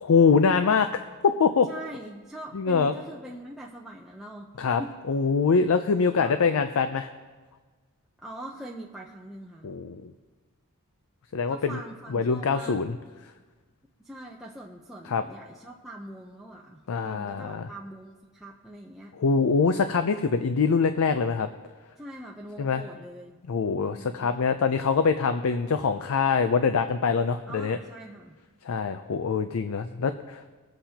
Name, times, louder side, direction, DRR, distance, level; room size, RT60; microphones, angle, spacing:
voice 1, 0.0-0.9 1.2-1.7 2.5-2.9 4.6-4.8 5.1-7.1 9.6-10.1 11.3-11.8 12.1-13.0 15.1-15.2 16.9-17.7 19.2-21.5 22.6-22.8 23.5-27.8 28.6-30.5, left 5 dB, 65° left, 9 dB, 0.5 m, -24 dB
voice 2, 1.6-4.9 5.5-5.7 6.1-6.3 8.2-9.7 11.5-12.8 14.0-19.1 22.0-23.4 23.8-24.3 27.5-28.3, right 1 dB, ahead, -3 dB, 0.6 m, -42 dB
21.0 x 7.9 x 2.9 m, 1.4 s
head